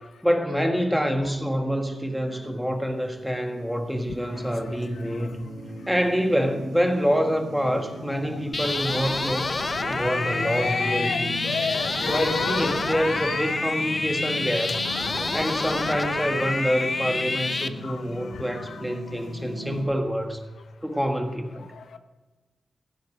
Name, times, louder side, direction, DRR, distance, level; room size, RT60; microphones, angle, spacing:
voice 1, 0.2-5.4 5.9-9.5 9.9-11.5 12.1-14.9 15.3-20.4 20.8-21.7, equal, ahead, 5 dB, 1.7 m, -26 dB
sound 1, 1.2-19.8, equal, 85° right, 4.0 m, -39 dB
sound 2, 8.5-17.7, left 3 dB, 35° left, 0.7 m, -28 dB
voice 2, 9.8-13.6 15.1-15.3 17.8-18.0 18.3-18.7 21.7-22.0, left 5 dB, 80° left, 9 dB, 0.8 m, -32 dB
15.5 x 9.5 x 5.2 m, 1.2 s
cardioid pair, 85°, 0 cm